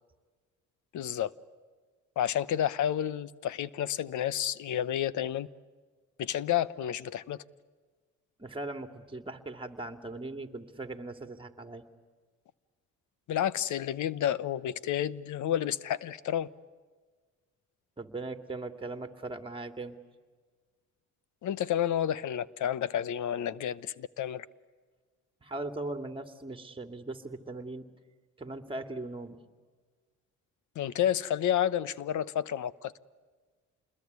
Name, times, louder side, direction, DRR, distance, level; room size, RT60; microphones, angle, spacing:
voice 1, 0.9-1.3 2.2-5.5 6.2-7.4 13.3-16.5 21.4-24.5 30.7-32.9, left 10 dB, 75° left, 1.1 m, -30 dB
voice 2, 8.4-11.8 18.0-20.0 25.4-27.9 28.4-29.4, right 2 dB, 15° right, 2.5 m, -39 dB
28.0 x 21.5 x 9.6 m
cardioid pair, 90°, 30 cm